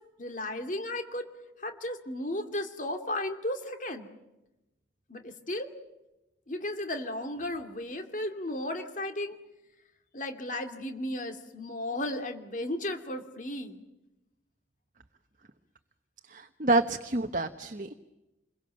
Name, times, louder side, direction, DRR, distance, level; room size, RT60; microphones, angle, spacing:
voice 1, 0.2-1.2 1.6-4.1 5.1-5.7 6.5-9.4 10.1-13.8, left 1 dB, 45° left, 6 dB, 2.6 m, -34 dB
voice 2, 16.3-17.9, right 2 dB, 45° right, 5 dB, 1.1 m, -28 dB
28.0 x 23.0 x 7.8 m, 0.97 s
head